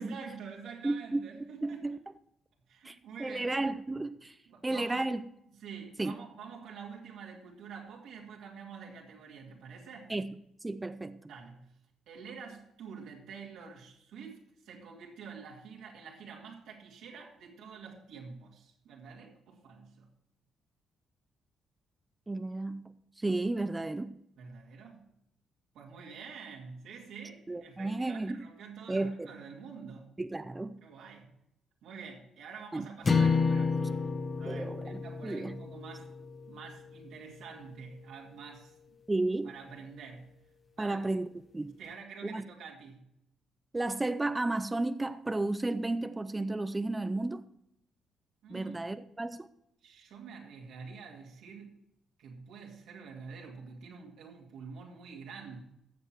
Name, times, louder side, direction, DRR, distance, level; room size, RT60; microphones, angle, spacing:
voice 1, 0.0-2.0 2.7-3.5 4.5-5.1 5.6-10.1 11.3-11.8 12.1-20.1 24.4-25.0 25.7-30.1 30.8-31.3 31.8-36.1 36.5-38.7 39.4-40.4 40.8-41.0 41.8-43.1 48.4-48.9 49.8-51.7 52.2-55.6, right 5 dB, 85° right, 2.2 m, -47 dB
voice 2, 0.8-1.2 1.6-2.0 2.8-4.4 4.6-5.2 6.0-6.1 10.1-10.3 10.6-11.2 22.3-24.2 27.5-28.4 28.9-29.3 30.2-30.8 32.7-32.9 34.4-35.6 39.1-39.5 40.8-41.3 41.5-41.8 42.2-42.4 43.7-47.4 48.5-49.5, right 2 dB, 15° right, 0.5 m, -33 dB
sound 1, 33.0-37.4, left 4 dB, 30° left, 1.1 m, -31 dB
14.5 x 7.0 x 4.5 m
cardioid pair, 90°, 0 cm